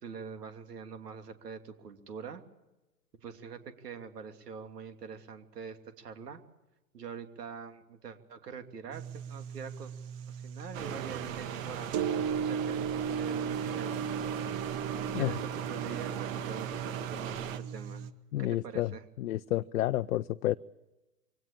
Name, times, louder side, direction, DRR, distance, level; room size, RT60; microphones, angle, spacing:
voice 1, 0.0-2.4 3.2-6.4 6.9-9.9 10.3-12.0 12.4-14.6 14.9-18.0 18.4-19.0, right 6 dB, 75° right, 2.9 m, -44 dB
sound 1, 8.9-18.1, right 7 dB, 30° right, 1.2 m, -37 dB
sound 2, 10.7-17.6, right 10 dB, 55° right, 1.8 m, -38 dB
voice 2, 18.3-18.9 19.2-20.6, left 14 dB, 60° left, 0.7 m, -30 dB
23.5 x 17.5 x 8.8 m
hypercardioid pair, 130°, 47 cm